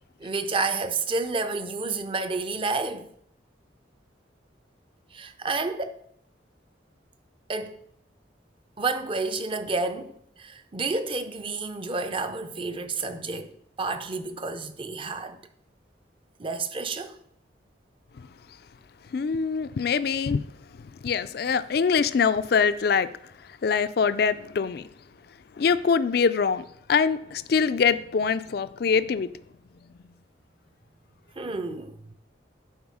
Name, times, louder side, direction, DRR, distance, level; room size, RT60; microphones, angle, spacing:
voice 1, 0.2-3.1 5.1-6.0 7.5-7.8 8.8-13.5 13.8-15.4 16.4-17.2 31.4-32.0, right 3 dB, 30° right, 0.6 m, -30 dB
voice 2, 19.1-20.5 21.0-23.1 23.6-24.9 25.6-29.3, left 6 dB, 55° left, 0.4 m, -24 dB
11.0 x 4.4 x 4.8 m
head